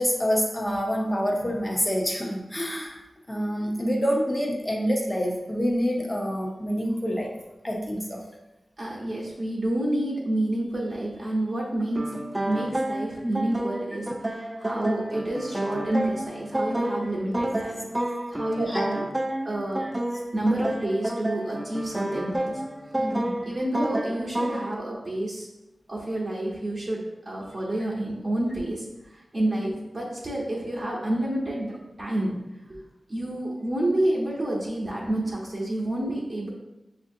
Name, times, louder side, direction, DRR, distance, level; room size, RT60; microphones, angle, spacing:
voice 1, 0.0-3.0 3.3-7.3 7.6-8.2 18.6-18.9 19.8-19.9 23.0-23.5, equal, 15° left, 0 dB, 0.7 m, -27 dB
voice 2, 8.8-12.1 12.5-17.9 18.3-19.0 19.4-19.9 20.3-22.6 23.4-25.5 25.9-27.0 27.3-32.3 32.7-32.8 33.1-36.5, right 1 dB, 35° right, -6 dB, 0.9 m, -29 dB
sound 1, 12.0-24.7, right 1 dB, 15° right, 0.3 m, -30 dB
6.1 x 2.5 x 2.6 m, 1.0 s
wide cardioid pair, 110°, 0 cm